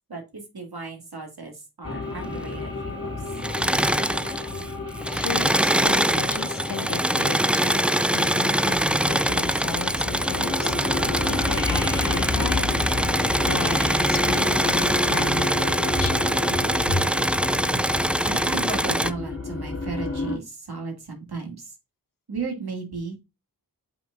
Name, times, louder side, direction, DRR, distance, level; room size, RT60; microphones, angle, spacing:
voice 1, 0.1-3.1 16.0-16.1 16.9-17.4 18.2-21.7 22.3-23.2, right 2 dB, 70° right, 2.5 m, -33 dB
sound 1, 1.8-20.4, left 3 dB, 40° left, 3.0 m, -31 dB
Engine / Mechanisms, 3.3-4.7 5.0-19.1, right 1 dB, 5° right, 0.3 m, -23 dB
voice 2, 5.1-7.9 8.1-10.7 11.2-12.7 13.2-16.5, left 7 dB, 60° left, 0.6 m, -35 dB
6.6 x 5.8 x 2.6 m
wide cardioid pair, 45°, 39 cm